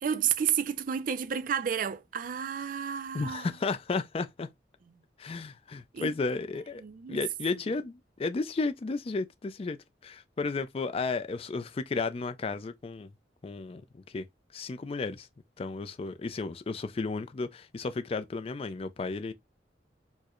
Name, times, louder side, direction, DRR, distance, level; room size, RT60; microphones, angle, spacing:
voice 1, 0.0-3.5 5.9-6.1 6.8-7.2, right 8 dB, 50° right, 0.4 m, -31 dB
voice 2, 3.1-4.5 5.2-6.8 7.1-9.8 10.0-13.1 13.4-13.8 14.1-14.3 14.5-15.3 15.6-19.3, left 3 dB, 35° left, 0.4 m, -33 dB
4.4 x 2.1 x 2.9 m
head